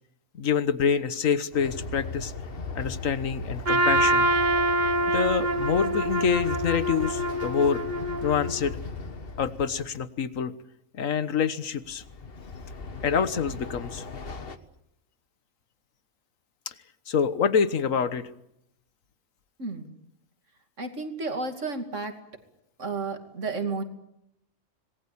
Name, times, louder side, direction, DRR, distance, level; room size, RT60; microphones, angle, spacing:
voice 1, 0.3-2.3 2.7-4.3 5.1-7.8 8.2-8.8 9.4-10.5 10.9-12.0 13.0-14.0 16.7-16.8 17.1-18.3, left 7 dB, 80° left, 13 dB, 1.6 m, -26 dB
Train, 1.5-10.0 11.8-14.6, left 4 dB, 45° left, 1.5 m, -38 dB
Trumpet, 3.6-8.7, right 1 dB, 40° right, 1.1 m, -25 dB
voice 2, 20.8-22.1 22.8-23.8, right 3 dB, 65° right, 6 dB, 3.0 m, -32 dB
26.0 x 20.0 x 8.7 m, 0.80 s
omnidirectional pair, 1.4 m